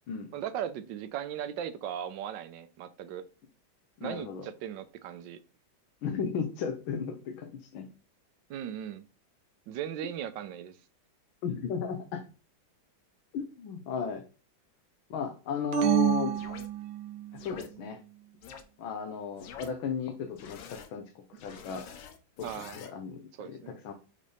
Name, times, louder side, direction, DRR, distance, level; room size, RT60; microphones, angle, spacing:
voice 1, 0.3-3.2 4.0-5.4 8.5-9.0 9.7-10.7 22.4-22.8 23.4-23.7, right 10 dB, 70° right, 1.2 m, -38 dB
voice 2, 4.0-4.5 6.0-7.9 11.4-12.2 13.3-14.2 15.1-16.3 17.3-18.0 18.8-21.9 22.4-23.9, left 6 dB, 85° left, 1.7 m, -35 dB
sound 1, 15.7-17.4, right 12 dB, 90° right, 1.5 m, -28 dB
sound 2, 16.3-16.7 17.4-17.7 18.4-18.6 19.4-19.7 20.4-20.9 21.4-22.9, left 7 dB, 65° left, 1.3 m, -47 dB
5.3 x 4.3 x 5.0 m
omnidirectional pair, 2.2 m